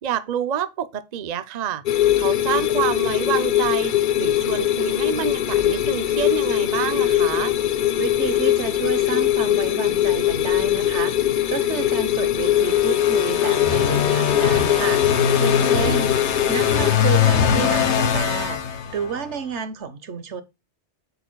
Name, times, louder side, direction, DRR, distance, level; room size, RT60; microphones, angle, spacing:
voice 1, 0.0-7.5 15.8-16.0, right 9 dB, 45° right, 0.6 m, -28 dB
sound 1, 1.9-16.9, left 12 dB, 55° left, 0.7 m, -21 dB
voice 2, 8.0-16.2 16.5-20.4, right 7 dB, 80° right, 1.4 m, -30 dB
sound 2, 12.4-19.3, left 7 dB, 80° left, 1.3 m, -22 dB
8.7 x 7.0 x 2.2 m
omnidirectional pair, 1.2 m